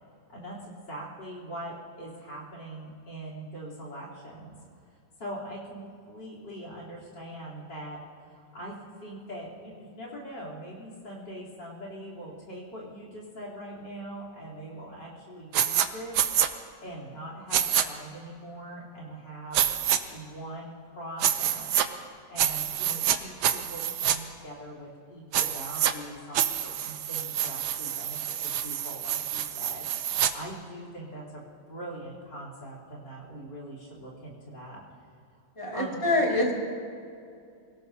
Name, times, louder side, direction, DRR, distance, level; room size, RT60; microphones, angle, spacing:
voice 1, 0.3-4.6 5.2-16.2 16.5-19.6 20.1-21.7 22.3-28.2 28.6-34.8 35.7-36.4, right 1 dB, 75° left, -5 dB, 4.2 m, -42 dB
sound 1, 15.5-15.9 16.1-16.5 17.5-17.8 19.5-20.0 21.2-21.9 22.4-23.2 23.4-24.2 25.3-25.9 26.3-30.3, right 10 dB, 70° right, 1.2 m, -27 dB
voice 2, 35.6-36.5, left 1 dB, 15° left, -3 dB, 2.3 m, -25 dB
25.5 x 17.5 x 2.8 m, 2.5 s
omnidirectional pair, 1.9 m